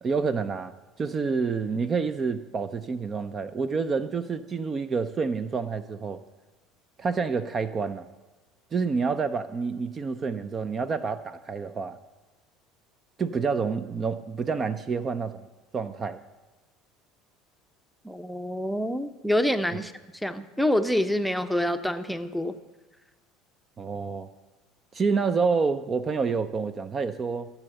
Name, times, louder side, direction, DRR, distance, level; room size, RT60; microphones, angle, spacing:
voice 1, 0.0-6.2 7.0-8.1 8.7-12.0 13.2-15.4 15.7-16.2 23.8-24.3 24.9-27.5, right 5 dB, 30° right, 12 dB, 0.5 m, -28 dB
voice 2, 18.0-19.9 20.2-22.6, left 1 dB, ahead, 9 dB, 0.7 m, -26 dB
14.0 x 7.0 x 6.8 m, 1.2 s
hypercardioid pair, 70°, 0 cm